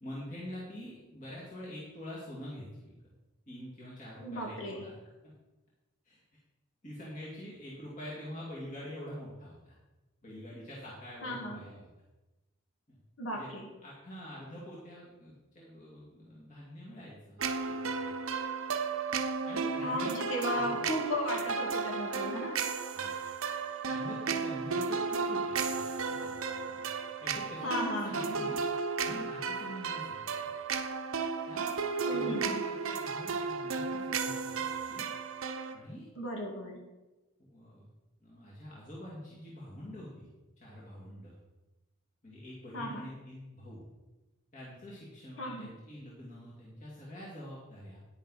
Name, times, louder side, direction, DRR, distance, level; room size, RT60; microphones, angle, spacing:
voice 1, 0.0-2.9 3.5-5.0 5.2-5.3 6.0-6.2 6.8-9.7 10.2-11.9 12.9-13.0 13.3-13.5 13.8-18.2 19.4-20.1 20.5-20.6 22.9-23.3 23.9-28.6 29.0-30.7 31.5-31.7 32.1-35.1 35.7-36.1 37.4-37.9 38.2-40.3 40.6-41.4 42.2-43.8 44.5-48.0, left 1 dB, 40° left, -6 dB, 2.5 m, -46 dB
voice 2, 4.2-4.9 11.2-11.6 13.2-13.7 19.8-22.6 27.6-28.5 32.0-32.6 36.2-36.8 42.7-43.0 45.4-45.7, left 1 dB, 75° left, 0 dB, 2.4 m, -35 dB
sound 1, 17.4-35.8, right 5 dB, 90° right, 0.8 m, -34 dB
10.5 x 9.8 x 4.2 m, 1.1 s
head